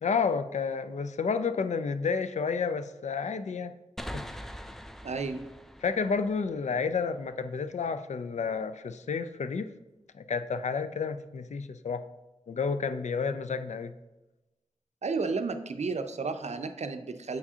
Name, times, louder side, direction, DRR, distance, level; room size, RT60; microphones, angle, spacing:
voice 1, 0.0-3.8 4.1-4.3 5.8-9.7 10.1-12.0 12.5-13.9, left 5 dB, 75° left, 11 dB, 0.4 m, -30 dB
sound 1, 4.0-7.5, equal, 5° left, 0.4 m, -43 dB
voice 2, 5.0-5.4 15.0-17.4, right 4 dB, 65° right, 8 dB, 0.5 m, -32 dB
7.7 x 4.7 x 2.8 m, 1.1 s
cardioid pair, 45°, 12 cm